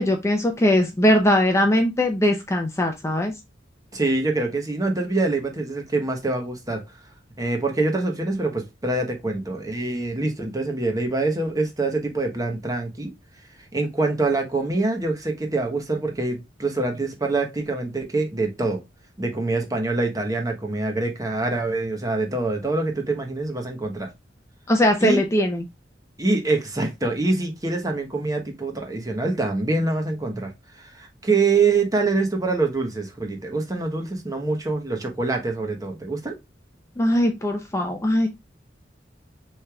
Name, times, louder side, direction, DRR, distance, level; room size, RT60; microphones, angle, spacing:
voice 1, 0.0-3.3 24.7-25.6 37.0-38.3, left 1 dB, 15° left, 0.6 m, -20 dB
voice 2, 3.9-6.8 7.4-13.1 13.7-18.8 19.2-24.1 25.0-25.2 26.2-30.5 30.8-36.4, right 3 dB, 20° right, 1.0 m, -25 dB
6.3 x 3.3 x 2.3 m
head